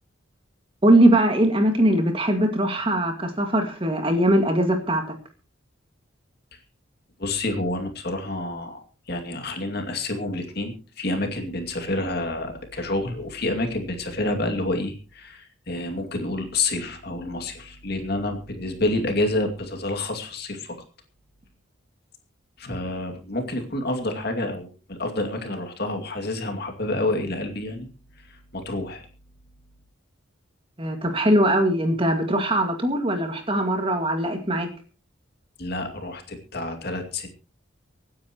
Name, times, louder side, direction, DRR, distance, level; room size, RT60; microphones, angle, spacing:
voice 1, 0.8-5.0 30.8-34.7, right 1 dB, 25° right, 5 dB, 2.1 m, -21 dB
voice 2, 7.2-20.7 22.6-27.9 28.2-29.1 35.6-37.3, left 2 dB, 50° left, 4 dB, 2.5 m, -28 dB
25.5 x 9.8 x 3.0 m, 0.34 s
head